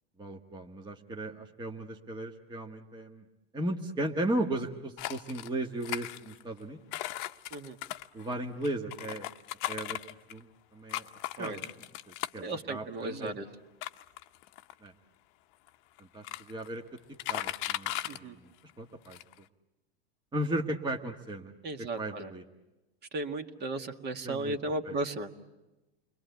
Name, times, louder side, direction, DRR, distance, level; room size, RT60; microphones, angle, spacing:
voice 1, 0.2-3.2 3.5-6.8 8.1-9.3 9.7-10.0 10.3-10.5 10.7-11.1 11.4-13.3 14.8-14.9 16.0-16.8 17.1-18.5 18.8-19.2 20.3-21.5 21.8-22.4 24.2-24.6 24.8-24.9, right 1 dB, 15° right, 2 dB, 1.4 m, -36 dB
sound 1, 5.0-5.5 5.8-6.6 6.9-10.4 10.9-12.5 13.1-13.2 13.8-14.9 15.7-15.8 16.0-16.7 17.0-18.2 18.7-18.8 19.0-19.3, left 16 dB, 55° left, 0.9 m, -37 dB
voice 2, 12.4-13.5 18.1-18.4 21.6-22.3 23.1-25.3, right 2 dB, 35° right, 6 dB, 1.9 m, -35 dB
29.5 x 22.0 x 8.2 m, 1.0 s
hypercardioid pair, 105°, 31 cm